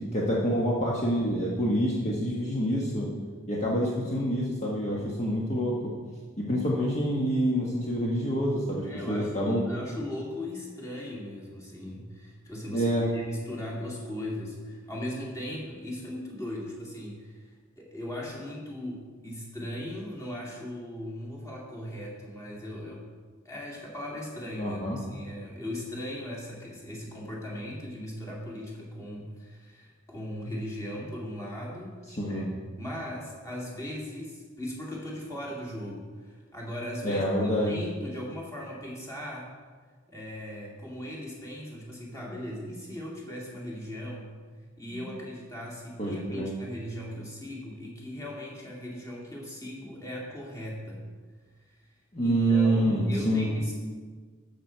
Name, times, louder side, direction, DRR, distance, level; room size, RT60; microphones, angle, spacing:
voice 1, 0.0-3.1 3.5-5.8 6.4-9.6 12.7-13.1 24.6-25.0 32.1-32.5 37.0-37.8 44.9-45.0 46.0-46.5 52.1-53.5, equal, 35° left, -5 dB, 1.3 m, -27 dB
voice 2, 8.8-17.5 17.8-23.1 23.4-31.9 32.2-32.5 32.8-39.5 40.1-44.4 44.8-51.0 51.6-51.8 52.2-53.7, left 1 dB, 15° left, -3 dB, 2.2 m, -38 dB
12.5 x 6.9 x 4.5 m, 1.5 s
head